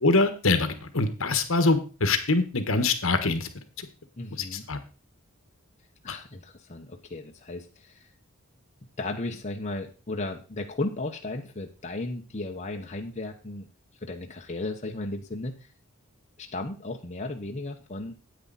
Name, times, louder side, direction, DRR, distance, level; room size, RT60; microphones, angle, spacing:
voice 1, 0.0-3.5 3.8-3.9 4.4-4.8 6.1-6.2, left 3 dB, 65° left, 9 dB, 1.3 m, -24 dB
voice 2, 4.2-4.6 6.0-8.1 9.0-13.7 14.0-15.7 16.4-18.2, left 2 dB, 30° left, 2 dB, 1.0 m, -35 dB
9.6 x 8.7 x 4.1 m, 0.33 s
head